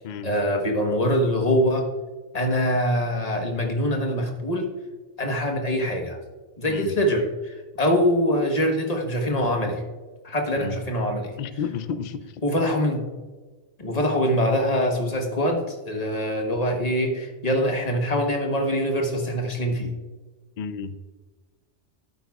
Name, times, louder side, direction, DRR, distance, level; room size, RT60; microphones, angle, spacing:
voice 1, 0.2-1.9 2.3-4.7 5.2-6.2 6.6-9.8 10.2-11.3 12.4-13.1 13.8-19.9, equal, 35° left, 2 dB, 1.3 m, -24 dB
voice 2, 11.4-12.4 20.6-21.0, left 6 dB, 50° left, 11 dB, 0.5 m, -32 dB
12.0 x 9.5 x 2.4 m, 1.3 s
omnidirectional pair, 1.2 m